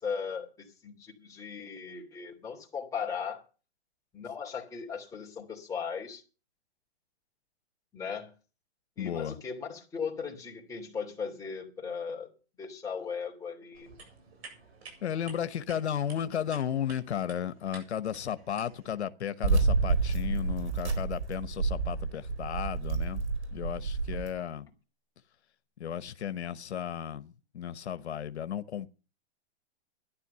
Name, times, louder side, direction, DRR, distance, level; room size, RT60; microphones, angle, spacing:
voice 1, 0.0-3.4 4.1-6.2 7.9-8.3 9.0-12.3 12.6-14.0, left 6 dB, 10° left, 2.8 m, -37 dB
voice 2, 9.0-9.4 15.0-23.2 23.5-24.7 25.8-28.9, left 9 dB, 90° left, 1.1 m, -34 dB
sound 1, 13.7-18.9, right 4 dB, 75° right, 7.9 m, -52 dB
sound 2, 19.4-24.3, right 4 dB, 90° right, 4.3 m, -29 dB
12.5 x 10.5 x 6.7 m
hypercardioid pair, 150°, 32 cm